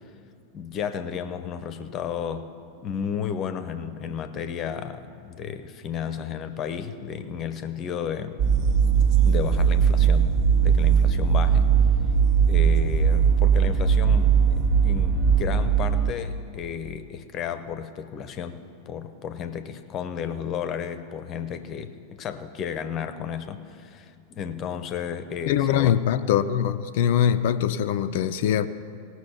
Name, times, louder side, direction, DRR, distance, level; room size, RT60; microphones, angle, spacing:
voice 1, 0.5-2.5 2.8-8.4 9.2-10.3 10.6-11.8 12.4-26.0, left 8 dB, 30° left, 11 dB, 0.7 m, -33 dB
sound 1, 8.4-16.1, right 7 dB, 40° right, 0.8 m, -19 dB
voice 2, 25.5-28.7, left 9 dB, 50° left, 10 dB, 0.4 m, -22 dB
18.0 x 6.2 x 5.7 m, 2.4 s
figure-of-eight pair, 90°, 0 cm